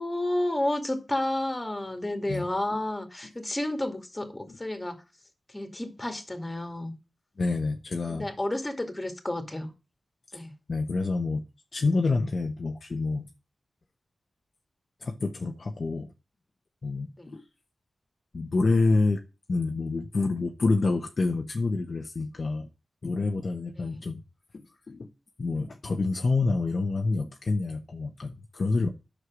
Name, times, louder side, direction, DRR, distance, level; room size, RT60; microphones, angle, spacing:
voice 1, 0.0-5.0 5.5-6.9 8.1-9.7 10.3-10.5 17.2-17.4 23.8-24.0, left 1 dB, 15° left, 2.4 m, -31 dB
voice 2, 7.4-8.3 10.3-10.4 10.7-11.4 11.7-13.3 15.0-16.1 16.8-17.4 18.3-19.2 19.5-22.7 23.0-24.2 24.5-25.1 25.4-28.9, left 3 dB, 50° left, 1.0 m, -27 dB
9.7 x 6.6 x 6.1 m
wide cardioid pair, 100°, 0 cm